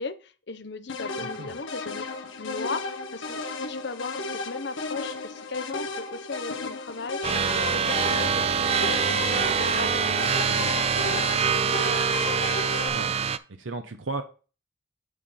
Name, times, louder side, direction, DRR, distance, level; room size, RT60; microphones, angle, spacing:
voice 1, 0.0-2.0 2.3-12.0, left 4 dB, 60° left, 0.8 m, -37 dB
sound 1, 0.9-12.9, left 3 dB, 75° left, 1.3 m, -34 dB
sound 2, 7.2-13.4, right 6 dB, 30° right, 0.4 m, -25 dB
voice 2, 13.6-14.2, right 3 dB, 80° right, 0.8 m, -34 dB
8.1 x 4.3 x 5.6 m
head